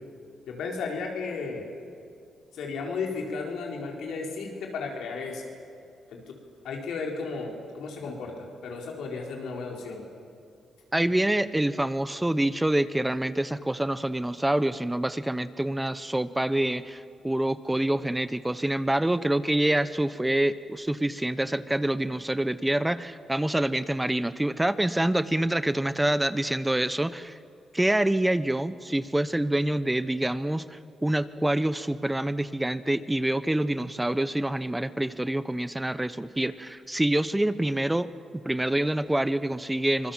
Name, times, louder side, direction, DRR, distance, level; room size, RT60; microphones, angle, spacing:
voice 1, 0.5-1.7 2.5-5.4 6.1-6.3 6.6-10.0, left 4 dB, 80° left, 1 dB, 4.4 m, -34 dB
voice 2, 10.9-27.4 27.7-40.1, right 1 dB, 10° right, 14 dB, 0.9 m, -26 dB
25.5 x 20.5 x 7.4 m, 2.4 s
supercardioid pair, 60°, 0 cm